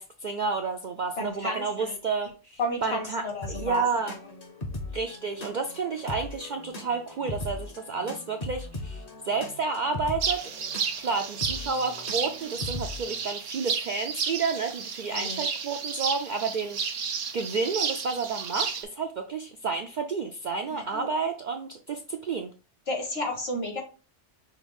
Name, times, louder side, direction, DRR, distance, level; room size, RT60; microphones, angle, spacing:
voice 1, 0.0-3.2 3.5-4.1 4.9-10.5 11.0-22.5, right 4 dB, 60° right, 4 dB, 0.5 m, -31 dB
voice 2, 1.2-1.9 2.6-3.8 15.1-15.5 20.7-21.1 22.9-23.8, left 1 dB, 55° left, 1 dB, 1.6 m, -32 dB
sound 1, 3.4-13.2, left 2 dB, 40° left, 0.8 m, -39 dB
sound 2, 10.2-18.8, right 6 dB, 85° right, 1.0 m, -32 dB
5.6 x 2.4 x 3.4 m, 0.34 s
omnidirectional pair, 1.2 m